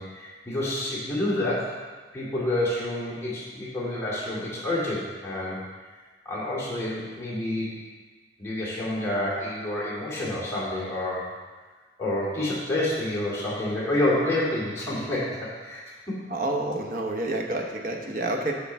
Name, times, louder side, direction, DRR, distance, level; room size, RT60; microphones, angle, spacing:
voice 1, 0.0-1.7 2.1-5.6 6.2-7.8 8.4-11.3 12.0-15.8 16.1-16.2, left 1 dB, 15° left, -9 dB, 2.6 m, -28 dB
voice 2, 16.3-18.5, right 2 dB, 50° right, 2 dB, 0.9 m, -28 dB
8.3 x 7.0 x 3.5 m, 1.4 s
head